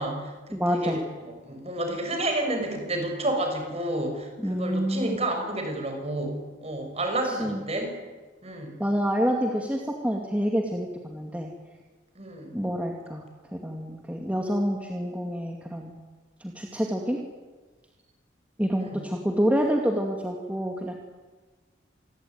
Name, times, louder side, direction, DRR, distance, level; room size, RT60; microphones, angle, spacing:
voice 1, 0.0-8.0 8.4-8.8 12.1-12.5 18.8-19.1, right 1 dB, 30° right, 4 dB, 6.4 m, -30 dB
voice 2, 0.5-1.0 4.4-5.2 7.2-7.6 8.8-11.5 12.5-13.2 13.5-15.9 16.4-17.2 18.6-20.9, equal, 5° right, 1 dB, 2.2 m, -27 dB
27.0 x 21.0 x 9.4 m, 1.3 s
head